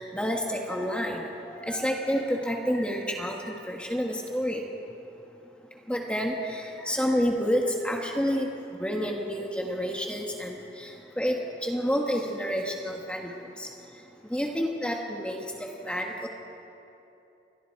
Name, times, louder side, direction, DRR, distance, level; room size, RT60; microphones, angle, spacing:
voice 1, 0.0-4.6 5.9-8.5 8.8-10.9 11.2-13.3 13.6-13.7 14.3-15.4 15.8-16.3, equal, 5° left, 0 dB, 1.6 m, -29 dB
28.5 x 23.0 x 4.7 m, 2.8 s
head